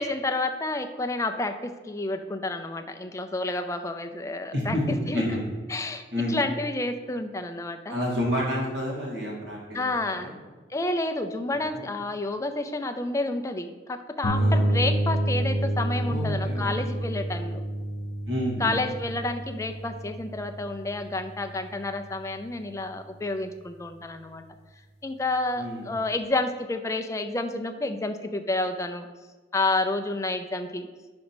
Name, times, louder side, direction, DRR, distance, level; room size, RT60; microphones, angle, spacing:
voice 1, 0.0-4.8 5.1-5.3 5.7-6.0 6.3-8.0 9.7-10.3 10.7-17.6 18.6-24.4 25.0-29.1 29.5-30.9, left 2 dB, 15° left, 7 dB, 0.4 m, -30 dB
voice 2, 4.5-5.4 6.1-6.4 7.9-10.3 11.7-11.8 14.3-14.7 16.1-16.7 18.3-18.8 25.5-25.9, left 1 dB, 65° right, -4 dB, 2.2 m, -29 dB
sound 1, 14.2-22.0, right 1 dB, 55° left, 0.8 m, -29 dB
5.2 x 4.9 x 6.1 m, 1.3 s
head